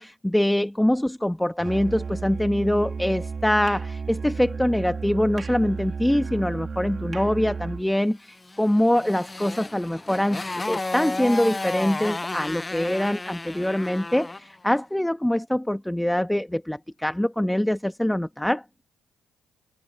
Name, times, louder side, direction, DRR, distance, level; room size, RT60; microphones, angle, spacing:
voice 1, 0.0-18.6, left 1 dB, 5° left, 1.6 m, -24 dB
Musical instrument, 1.6-7.9, right 5 dB, 45° right, 3.6 m, -33 dB
Motorcycle, 8.4-14.5, left 2 dB, 20° left, 0.7 m, -33 dB
hypercardioid pair, 50°, 0 cm